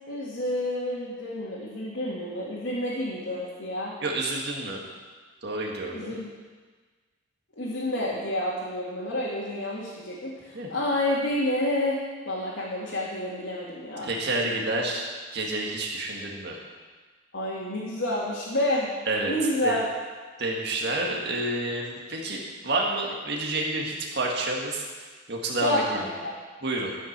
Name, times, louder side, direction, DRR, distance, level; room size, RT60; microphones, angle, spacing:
voice 1, 0.1-3.9 5.9-6.3 7.6-12.0 12.3-14.1 17.3-18.9 19.3-19.8 25.6-26.3, left 1 dB, 85° left, -7 dB, 2.1 m, -29 dB
voice 2, 4.0-4.8 5.4-6.1 10.5-10.7 14.0-16.6 19.1-19.3 19.6-19.8 20.4-24.8 25.3-25.8 26.6-26.9, right 2 dB, 60° right, -1 dB, 1.8 m, -29 dB
13.5 x 5.7 x 6.7 m, 1.4 s
head